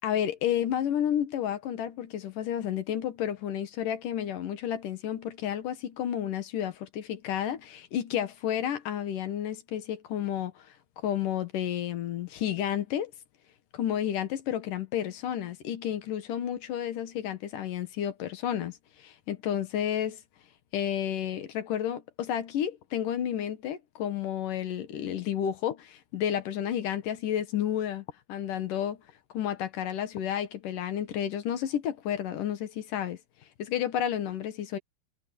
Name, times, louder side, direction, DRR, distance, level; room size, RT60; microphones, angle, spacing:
voice 1, 0.0-10.5 11.0-13.1 13.7-20.2 20.7-29.0 29.3-33.2 33.6-34.8, left 10 dB, 65° left, 2.9 m, -31 dB
omnidirectional pair, 4.2 m